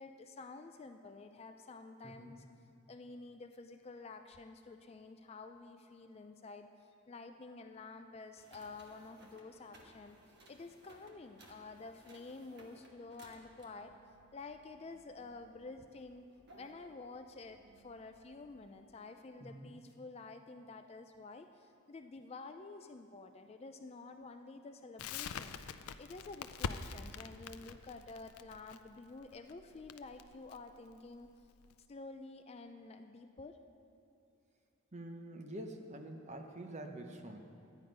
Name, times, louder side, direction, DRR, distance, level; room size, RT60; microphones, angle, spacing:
voice 1, 0.0-2.5 2.9-10.2 10.5-13.9 14.3-16.2 16.6-25.6 26.0-31.3 31.9-33.6, left 3 dB, 30° left, 7 dB, 0.3 m, -50 dB
voice 2, 2.0-2.4 19.4-19.7 34.9-37.4, right 1 dB, 30° right, 4 dB, 0.8 m, -46 dB
sound 1, 8.4-18.8, right 1 dB, 50° right, 1.3 m, -62 dB
Crackle, 25.0-31.8, left 6 dB, 90° left, 0.4 m, -44 dB
11.5 x 9.3 x 5.3 m, 2.7 s
head